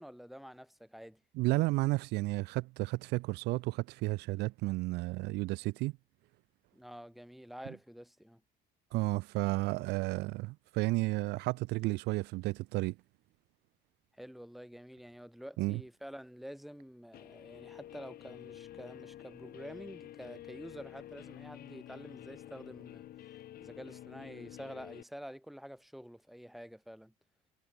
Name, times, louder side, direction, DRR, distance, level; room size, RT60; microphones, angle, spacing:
voice 1, 0.0-1.2 6.7-8.4 14.2-23.1 23.6-27.1, equal, ahead, 2.9 m, -48 dB
voice 2, 1.3-6.0 8.9-13.0 15.6-15.8, right 21 dB, 85° right, 0.5 m, -32 dB
Guitar, 17.1-25.0, left 12 dB, 65° left, 4.9 m, -49 dB
cardioid pair, 110°, 17 cm